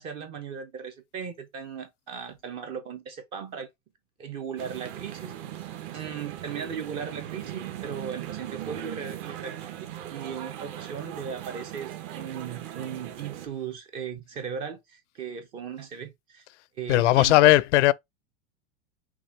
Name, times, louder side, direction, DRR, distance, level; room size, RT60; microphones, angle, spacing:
voice 1, 0.0-3.7 4.2-5.7 5.9-16.4 16.8-17.6, right 7 dB, 15° right, 0.3 m, -37 dB
sound 1, 4.6-13.5, right 12 dB, 45° right, 1.0 m, -39 dB
voice 2, 16.9-17.9, left 16 dB, 90° left, 0.5 m, -18 dB
5.9 x 2.1 x 4.3 m
supercardioid pair, 165°, 34 cm